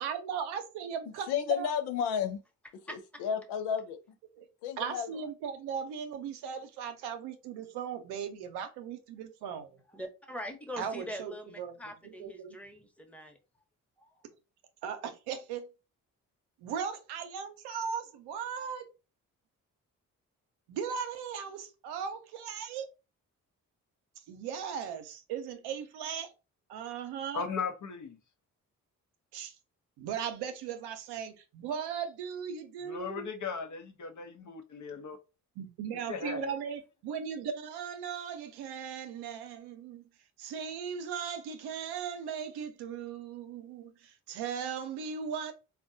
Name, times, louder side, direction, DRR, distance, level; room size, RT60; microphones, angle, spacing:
voice 1, 0.0-1.7 4.4-4.5 4.8-9.8 10.8-11.7 12.0-12.6 14.8-15.7 16.6-18.8 20.7-22.9 24.3-26.3 26.7-27.5 29.3-29.5 30.0-33.3 35.6-40.0 40.4-45.5, right 7 dB, 85° right, 0.6 m, -38 dB
voice 2, 1.3-2.4 2.9-4.0 4.6-5.1, left 8 dB, 90° left, 0.5 m, -32 dB
voice 3, 9.9-13.4, equal, 5° left, 0.9 m, -42 dB
voice 4, 27.3-28.2 32.9-35.2 36.1-36.5, left 5 dB, 50° left, 0.7 m, -37 dB
3.5 x 2.2 x 2.6 m
supercardioid pair, 45°, 38 cm